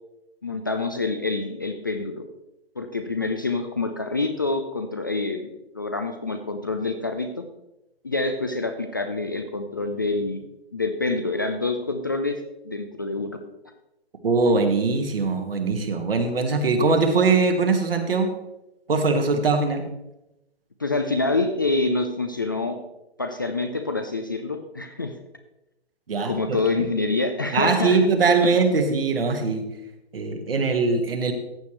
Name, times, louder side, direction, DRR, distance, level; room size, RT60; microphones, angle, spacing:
voice 1, 0.4-2.2 2.8-7.4 8.0-10.4 10.7-13.4 20.8-22.8 23.2-25.1 26.2-28.0, left 3 dB, 20° left, 6 dB, 0.3 m, -26 dB
voice 2, 14.2-18.3 18.9-19.9 26.1-26.4 26.8-26.9 27.5-29.7 30.1-31.3, right 4 dB, 60° right, 5 dB, 1.8 m, -21 dB
14.0 x 8.3 x 3.2 m, 0.90 s
figure-of-eight pair, 135°, 32 cm